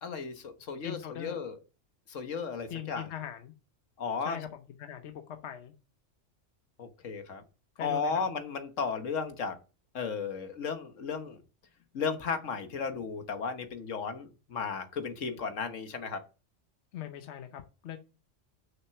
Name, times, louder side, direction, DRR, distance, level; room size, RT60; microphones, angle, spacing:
voice 1, 0.0-1.6 2.1-3.1 4.0-4.4 6.8-7.4 7.8-9.6 9.9-11.4 11.9-16.2, left 5 dB, 80° left, 1.5 m, -34 dB
voice 2, 0.8-1.4 2.7-3.5 4.2-5.7 7.8-8.2 16.9-18.0, left 10 dB, 65° left, 1.0 m, -41 dB
6.4 x 5.9 x 5.8 m
omnidirectional pair, 1.3 m